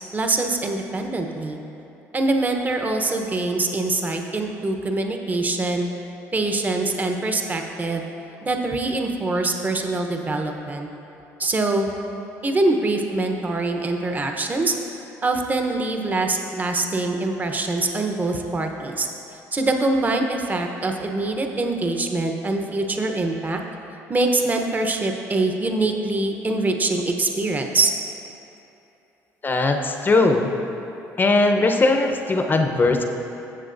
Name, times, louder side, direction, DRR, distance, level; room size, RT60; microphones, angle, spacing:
voice 1, 0.1-1.6 2.1-5.9 6.3-8.0 8.4-10.9 11.4-11.9 12.4-14.8 15.2-19.1 19.5-23.6 24.1-27.9, right 2 dB, 25° right, 4 dB, 0.9 m, -24 dB
voice 2, 29.4-30.5 31.2-33.0, left 3 dB, 30° left, 4 dB, 0.7 m, -19 dB
13.5 x 7.5 x 2.6 m, 2.9 s
supercardioid pair, 80°, 7 cm